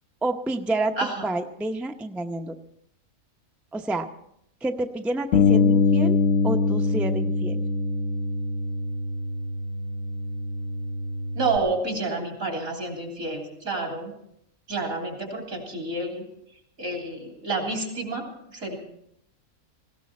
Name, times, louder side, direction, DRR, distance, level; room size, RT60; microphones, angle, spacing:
voice 1, 0.2-1.0 1.2-2.6 3.7-4.1 4.6-6.2 6.4-7.6, right 2 dB, ahead, 4 dB, 0.6 m, -29 dB
voice 2, 1.0-1.3 11.3-14.1 14.7-16.2 16.8-18.7, right 3 dB, 80° right, 1 dB, 3.8 m, -29 dB
Bass guitar, 5.3-11.6, left 4 dB, 65° left, 1.1 m, -24 dB
19.0 x 17.0 x 4.3 m, 0.74 s
omnidirectional pair, 1.4 m